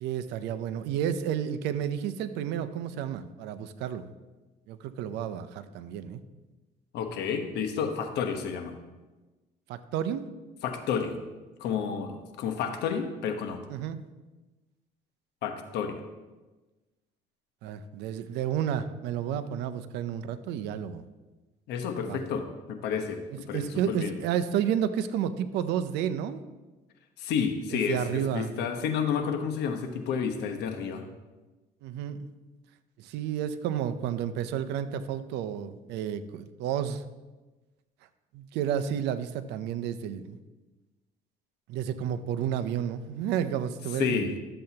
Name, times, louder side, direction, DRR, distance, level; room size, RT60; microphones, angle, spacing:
voice 1, 0.0-4.1 4.7-6.2 9.7-10.3 13.7-14.0 17.6-21.0 22.0-22.2 23.5-26.4 27.7-28.5 31.8-32.3 33.0-37.0 38.3-40.4 41.7-44.4, right 9 dB, 90° right, 11 dB, 0.6 m, -31 dB
voice 2, 6.9-8.7 10.6-11.2 11.6-13.6 15.4-16.0 21.7-23.2 23.5-24.2 27.2-31.0 44.0-44.3, left 7 dB, 80° left, 6 dB, 1.1 m, -30 dB
12.0 x 7.7 x 2.9 m, 1.2 s
cardioid pair, 110°, 17 cm